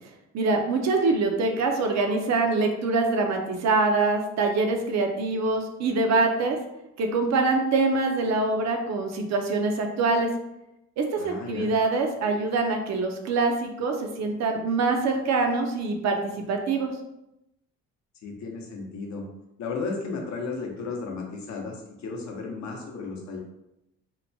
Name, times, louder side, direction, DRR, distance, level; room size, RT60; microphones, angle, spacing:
voice 1, 0.3-6.6 7.0-10.3 11.0-16.2 16.5-16.9, right 3 dB, 60° right, 4 dB, 0.5 m, -24 dB
voice 2, 11.2-11.7 18.2-19.2 19.6-23.4, left 4 dB, 65° left, 1 dB, 0.7 m, -34 dB
2.9 x 2.1 x 2.6 m, 0.89 s
cardioid pair, 90°, 30 cm